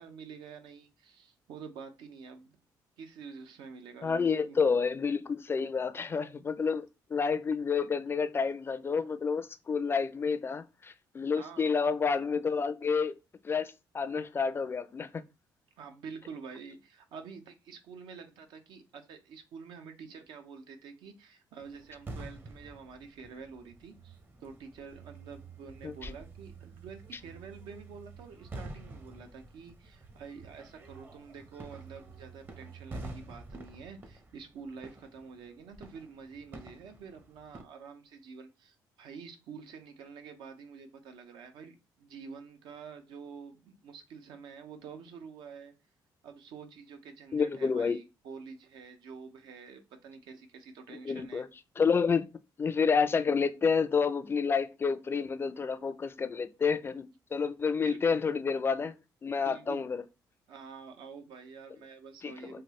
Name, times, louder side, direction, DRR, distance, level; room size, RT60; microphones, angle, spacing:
voice 1, 0.0-2.6 3.0-4.6 11.4-11.8 15.8-45.7 46.2-51.4 57.8-58.1 59.5-59.8 60.5-62.6, right 5 dB, 80° right, 0.7 m, -48 dB
voice 2, 4.0-6.9 7.1-13.1 13.4-15.2 25.8-26.1 47.3-48.0 50.9-51.5 51.8-52.3 52.6-57.1 57.3-59.0 59.2-60.0 62.2-62.6, left 5 dB, 30° left, 0.4 m, -29 dB
sound 1, 21.6-37.6, right 2 dB, 25° right, 0.6 m, -48 dB
3.2 x 2.3 x 2.9 m
cardioid pair, 95°, 8 cm